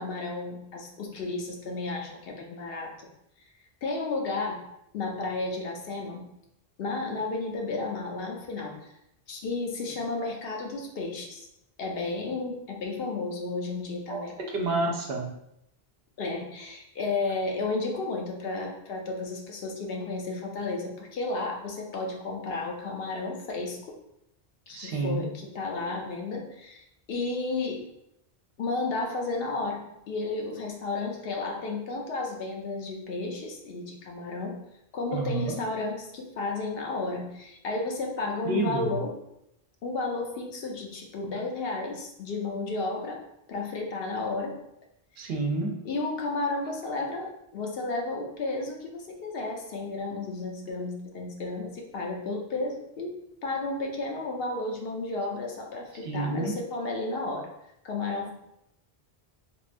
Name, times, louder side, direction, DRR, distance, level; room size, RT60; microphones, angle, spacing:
voice 1, 0.0-3.1 3.8-4.6 4.9-6.2 6.8-8.9 9.3-11.5 11.8-14.3 16.2-23.8 24.7-27.9 28.6-34.6 34.9-39.1 39.8-43.2 43.5-44.6 45.8-57.5 57.8-58.3, left 3 dB, 70° left, 1 dB, 0.8 m, -32 dB
voice 2, 14.1-15.3 24.7-25.3 35.1-35.6 38.4-39.0 45.2-45.7 56.0-56.5, right 2 dB, 75° right, 1 dB, 0.8 m, -29 dB
3.5 x 2.2 x 2.5 m, 0.80 s
omnidirectional pair, 1.0 m